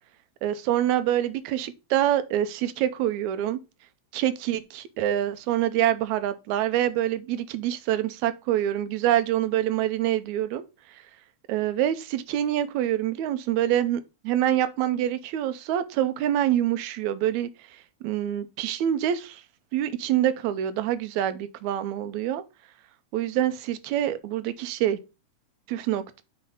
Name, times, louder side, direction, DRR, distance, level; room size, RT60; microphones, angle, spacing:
voice 1, 0.4-3.6 4.1-10.6 11.5-17.5 18.0-19.4 19.7-22.4 23.1-25.0 25.7-26.2, right 12 dB, 80° right, 2.0 m, -26 dB
5.7 x 5.2 x 3.7 m
omnidirectional pair, 3.4 m